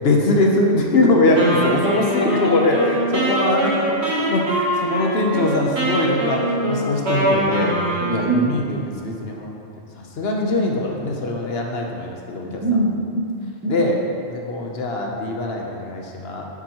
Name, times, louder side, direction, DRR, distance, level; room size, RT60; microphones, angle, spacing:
voice 1, 0.0-7.7 8.1-9.5 10.0-12.6 13.7-14.0 14.3-16.4, left 2 dB, 65° left, 0 dB, 1.1 m, -22 dB
Wind instrument woodwind instrument, 1.4-8.5, right 1 dB, 70° right, 1.6 m, -23 dB
voice 2, 2.2-2.5 3.5-3.6 8.0-8.6 12.4-14.0, right 2 dB, 20° right, -3 dB, 0.6 m, -23 dB
8.9 x 6.1 x 3.0 m, 2.4 s
omnidirectional pair, 1.2 m